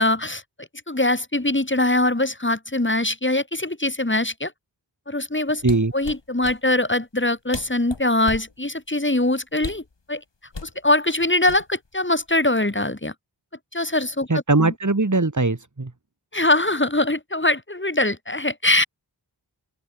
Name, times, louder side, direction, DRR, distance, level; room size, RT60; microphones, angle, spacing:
voice 1, 0.0-4.5 5.1-5.6 5.9-9.8 10.1-10.2 10.6-13.1 13.7-14.7 16.3-18.8, left 2 dB, 25° left, 4.1 m, -22 dB
sound 1, 5.6-6.6 7.2-7.3 7.5-8.5 9.6-9.9 10.5-10.8 11.5-11.9 12.3-12.6, left 3 dB, 80° left, 7.2 m, -35 dB
voice 2, 14.3-15.9, right 3 dB, 45° right, 4.1 m, -20 dB
open air
wide cardioid pair, 60°, 43 cm